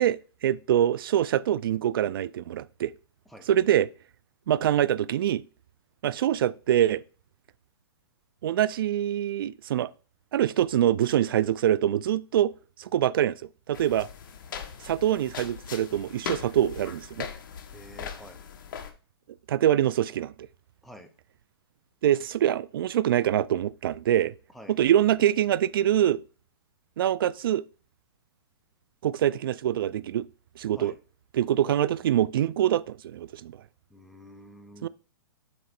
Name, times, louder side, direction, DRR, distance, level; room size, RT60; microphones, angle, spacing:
voice 1, 0.0-2.9 3.5-3.9 4.5-5.4 6.0-7.0 8.4-9.9 10.3-12.5 12.8-13.4 13.7-14.1 14.9-17.3 19.5-20.3 22.0-24.3 24.7-26.2 27.0-27.6 29.0-30.3 30.6-30.9 31.3-33.5 34.8-34.9, right 11 dB, 60° right, 0.4 m, -24 dB
sound 1, 13.7-18.9, left 7 dB, 55° left, 1.1 m, -40 dB
voice 2, 17.7-18.4 20.8-21.1 24.5-24.8 30.7-31.0 33.9-34.9, equal, ahead, 0.7 m, -48 dB
7.9 x 3.1 x 4.3 m
hypercardioid pair, 150°, 13 cm